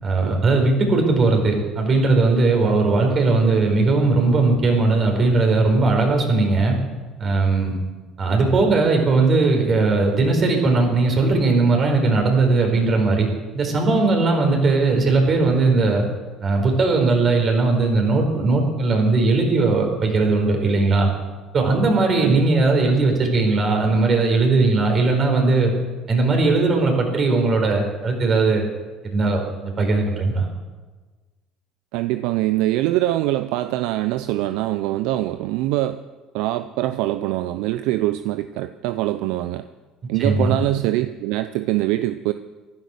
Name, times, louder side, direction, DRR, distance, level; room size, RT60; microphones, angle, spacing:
voice 1, 0.0-6.8 7.2-7.7 8.2-13.3 13.5-16.1 16.4-21.1 21.5-25.7 26.1-28.6 29.0-30.4 40.2-40.6, right 3 dB, 45° right, 3 dB, 4.8 m, -18 dB
voice 2, 31.9-36.0 36.3-39.6 40.1-42.3, right 15 dB, 70° right, 11 dB, 0.5 m, -23 dB
14.5 x 12.0 x 6.4 m, 1.3 s
hypercardioid pair, 70°, 0 cm